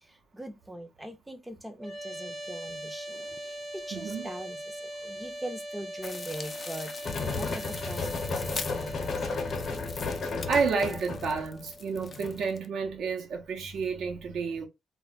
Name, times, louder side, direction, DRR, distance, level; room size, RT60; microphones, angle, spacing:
voice 1, 0.0-9.3, right 1 dB, 10° right, 0.5 m, -42 dB
sound 1, 1.8-12.9, right 1 dB, 40° right, 0.8 m, -41 dB
voice 2, 3.9-4.3 10.2-14.7, right 5 dB, 70° right, 0.7 m, -31 dB
sound 2, 6.0-12.7, left 4 dB, 35° left, 0.4 m, -42 dB
sound 3, 7.0-12.4, left 4 dB, 55° left, 0.8 m, -34 dB
2.2 x 2.1 x 3.8 m
cardioid pair, 90°, 0 cm